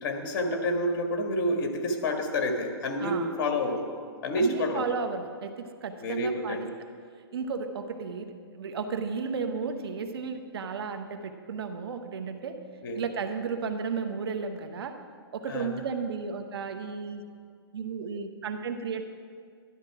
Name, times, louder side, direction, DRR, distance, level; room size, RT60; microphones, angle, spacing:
voice 1, 0.0-3.9 4.2-4.9 6.0-6.7 12.8-13.1 15.5-15.7, left 1 dB, 50° left, 4 dB, 1.8 m, -28 dB
voice 2, 4.4-6.6 7.3-12.5 12.9-14.9 15.3-17.2 17.7-19.0, right 5 dB, 70° right, 7 dB, 1.2 m, -33 dB
12.0 x 12.0 x 4.8 m, 2.1 s
hypercardioid pair, 155°, 13 cm